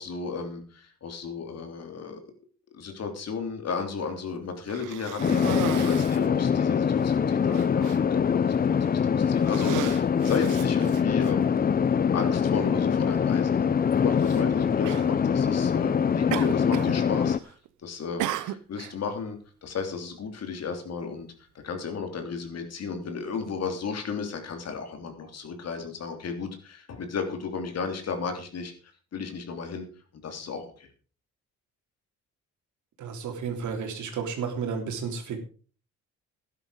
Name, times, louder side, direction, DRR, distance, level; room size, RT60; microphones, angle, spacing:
voice 1, 0.0-2.2 2.7-17.5 17.8-21.3 21.6-28.7 29.1-29.8 30.2-30.9, left 5 dB, 55° left, 6 dB, 3.1 m, -34 dB
Cough, 4.7-6.3 7.0-7.1 7.5-8.0 8.7-9.0 9.4-11.3 12.3-12.4 14.2-14.4 14.8-15.1 16.3-17.0 17.3-17.7 18.2-18.9, right 14 dB, 90° right, 0.8 m, -35 dB
sound 1, 5.2-17.4, left 7 dB, 30° left, 0.6 m, -24 dB
voice 2, 33.0-35.4, right 6 dB, 75° right, 4 dB, 3.3 m, -32 dB
12.0 x 10.5 x 4.8 m, 0.40 s
cardioid pair, 90°, 30 cm